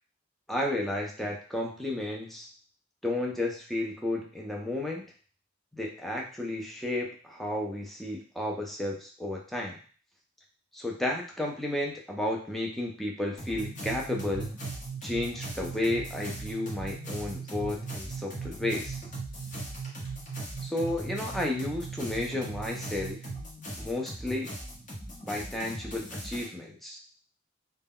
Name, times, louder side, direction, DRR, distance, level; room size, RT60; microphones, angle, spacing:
voice 1, 0.5-2.5 3.0-5.0 5.7-9.8 10.7-14.5 15.0-19.0 20.6-23.2 23.8-24.5 25.2-27.0, left 1 dB, ahead, -1 dB, 0.4 m, -32 dB
sound 1, 13.4-26.5, equal, 45° left, 0.8 m, -41 dB
sound 2, 13.6-23.4, right 7 dB, 50° right, 0.8 m, -40 dB
2.1 x 2.0 x 3.6 m, 0.40 s
head